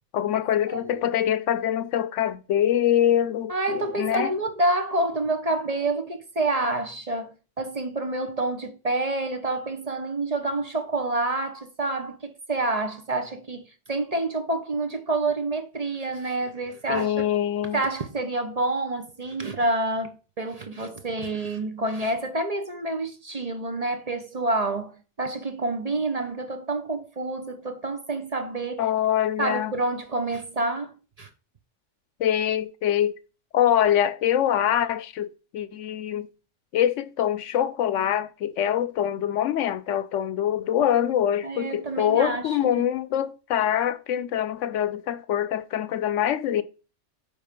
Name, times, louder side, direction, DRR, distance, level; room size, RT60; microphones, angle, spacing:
voice 1, 0.1-4.3 16.9-17.8 28.8-29.7 32.2-33.2 33.5-35.3 35.5-36.3 36.7-46.6, left 10 dB, 80° left, 1.0 m, -24 dB
voice 2, 0.7-1.0 3.5-13.6 13.9-17.2 17.7-28.9 29.4-31.3 41.4-42.8, right 2 dB, 35° right, 0.9 m, -28 dB
9.6 x 3.6 x 5.2 m
omnidirectional pair, 1.3 m